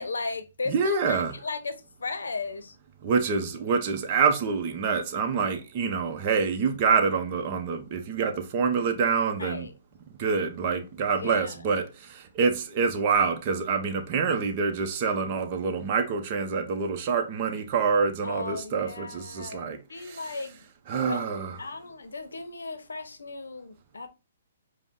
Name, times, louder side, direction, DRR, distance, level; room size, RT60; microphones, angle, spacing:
voice 1, 0.0-2.8 9.4-9.7 11.1-11.6 18.2-20.6 21.1-21.3 21.6-24.1, left 3 dB, 85° left, 0.7 m, -36 dB
voice 2, 0.7-1.3 3.0-9.7 10.2-20.2 20.9-21.5, right 5 dB, 40° right, 0.7 m, -26 dB
4.9 x 2.1 x 3.6 m
hypercardioid pair, 135°, 0 cm